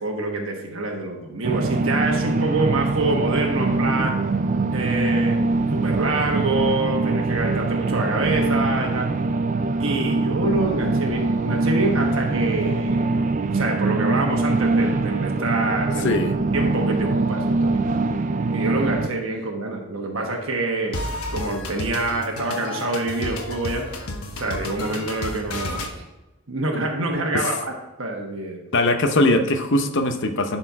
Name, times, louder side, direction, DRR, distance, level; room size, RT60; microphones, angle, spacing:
voice 1, 0.0-4.1 4.7-5.4 5.7-9.1 9.8-13.0 13.5-16.2 16.5-17.8 18.5-21.0 21.3-23.8 24.4-26.0 26.5-27.6 28.0-28.6, right 2 dB, 60° right, 1 dB, 1.2 m, -26 dB
sound 1, 1.4-19.1, right 3 dB, 35° right, 0.4 m, -23 dB
voice 2, 16.0-16.3 27.3-27.5 28.7-30.6, left 1 dB, 55° left, 7 dB, 0.8 m, -20 dB
sound 2, 20.9-25.9, left 2 dB, 75° left, 1.1 m, -31 dB
11.5 x 4.4 x 4.6 m, 1.1 s
head